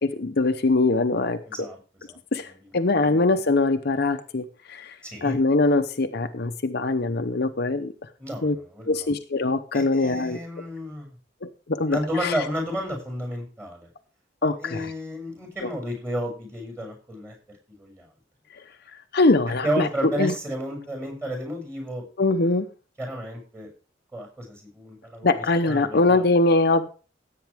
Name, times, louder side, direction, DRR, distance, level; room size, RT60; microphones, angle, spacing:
voice 1, 0.0-1.7 2.3-4.9 5.2-7.9 8.4-8.6 8.9-10.4 11.4-12.3 14.4-14.9 19.1-19.9 20.2-20.3 22.2-22.7 25.2-26.9, left 3 dB, 55° left, 7 dB, 0.8 m, -22 dB
voice 2, 1.4-1.8 2.4-2.7 5.0-5.4 8.2-9.1 9.7-11.1 11.9-13.9 14.6-17.3 17.7-18.1 19.6-22.0 23.0-23.7 24.1-26.3, equal, 15° right, 2 dB, 6.6 m, -32 dB
16.5 x 8.6 x 3.6 m, 0.35 s
head